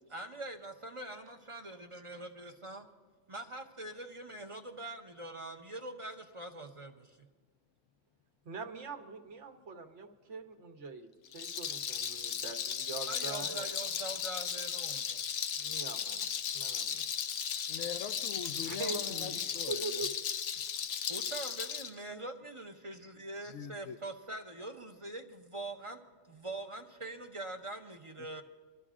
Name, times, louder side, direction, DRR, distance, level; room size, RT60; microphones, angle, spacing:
voice 1, 0.1-2.8 3.3-7.2 13.1-15.2 21.1-26.0 26.3-28.4, right 2 dB, 35° right, 0.6 m, -43 dB
voice 2, 8.4-13.7 15.6-16.3 16.5-17.1 18.6-19.4 19.7-20.1, right 4 dB, 70° right, 1.3 m, -43 dB
Rattle, 11.3-21.9, left 8 dB, 65° left, 0.8 m, -36 dB
voice 3, 17.7-20.0 23.4-24.0 28.2-28.4, left 8 dB, 85° left, 1.0 m, -43 dB
27.5 x 12.0 x 2.5 m
omnidirectional pair, 1.3 m